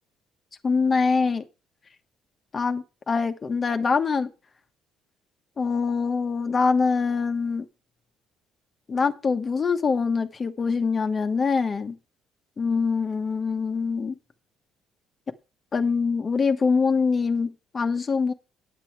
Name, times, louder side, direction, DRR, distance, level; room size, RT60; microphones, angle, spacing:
voice 1, 0.6-1.4 2.5-4.3 5.6-7.6 8.9-12.0 12.6-14.1 15.7-18.3, left 5 dB, 30° left, 1.2 m, -24 dB
9.2 x 9.1 x 4.6 m
cardioid pair, 120°, 0 cm